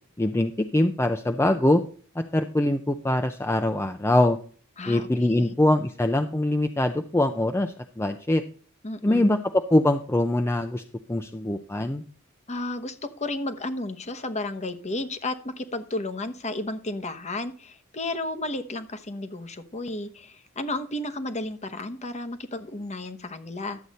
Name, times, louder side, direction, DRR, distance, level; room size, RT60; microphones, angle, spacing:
voice 1, 0.2-1.8 2.2-4.4 4.9-8.4 9.0-9.4 9.7-10.8 11.1-12.0, left 1 dB, 10° left, 7 dB, 0.5 m, -23 dB
voice 2, 4.8-5.5 8.8-9.3 12.5-23.8, left 2 dB, 35° left, 10 dB, 1.0 m, -33 dB
11.5 x 7.8 x 4.1 m, 0.41 s
head